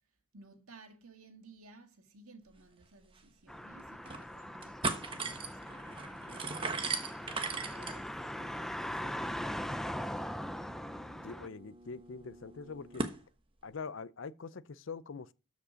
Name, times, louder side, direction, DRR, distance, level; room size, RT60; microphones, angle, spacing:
voice 1, 0.3-9.6, right 3 dB, 80° right, 1.9 m, -57 dB
sound 1, 2.8-2.9 3.2-3.3 3.8-4.2 4.5-13.2, right 4 dB, 25° right, 1.0 m, -40 dB
sound 2, 3.5-11.5, equal, ahead, 0.4 m, -41 dB
voice 2, 11.2-13.1 13.6-15.3, left 5 dB, 60° left, 0.5 m, -43 dB
13.0 x 5.2 x 5.0 m
head